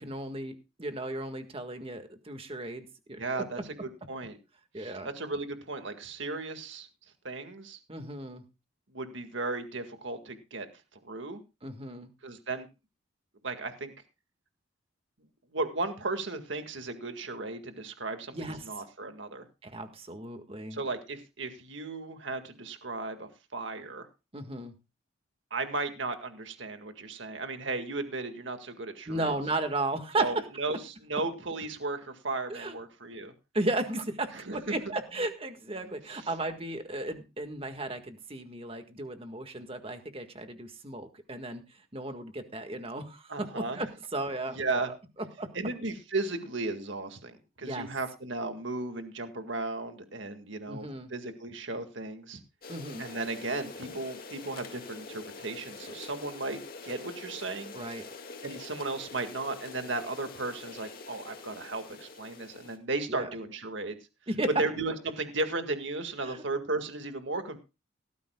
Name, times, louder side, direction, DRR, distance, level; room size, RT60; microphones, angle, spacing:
voice 1, 0.0-3.6 4.7-5.1 7.9-8.4 11.6-12.1 18.3-18.7 19.6-20.8 24.3-24.7 29.1-30.3 32.5-32.8 33.5-43.9 44.1-44.9 45.4-45.5 47.6-47.9 50.7-51.1 52.7-53.1 57.7-58.0 63.1-63.3 64.3-64.5 66.2-66.4, right 2 dB, 30° right, 7 dB, 1.7 m, -35 dB
voice 2, 3.2-4.4 4.8-6.9 7.2-7.8 8.9-10.7 10.9-11.4 12.2-12.7 13.4-13.9 15.5-19.5 20.7-24.1 25.5-29.4 30.2-33.3 34.3-34.8 43.3-43.8 44.5-44.9 45.5-52.4 53.0-57.7 58.4-64.0 64.6-67.6, right 3 dB, 60° right, 7 dB, 1.9 m, -35 dB
sound 1, 52.6-62.8, left 3 dB, 45° left, 2.1 m, -45 dB
17.5 x 13.5 x 2.3 m, 0.28 s
head